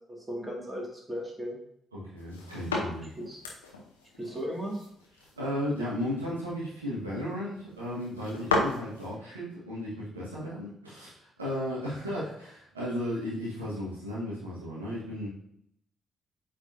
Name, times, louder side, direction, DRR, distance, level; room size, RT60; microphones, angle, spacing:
voice 1, 0.1-1.6 3.2-3.4 4.2-4.8, equal, 15° right, -2 dB, 2.2 m, -36 dB
voice 2, 1.9-3.1 5.4-15.3, equal, 85° right, -8 dB, 1.6 m, -35 dB
sound 1, 2.2-9.1, left 3 dB, 80° left, 0.9 m, -35 dB
8.6 x 4.1 x 2.7 m, 0.73 s
figure-of-eight pair, 40°, 0 cm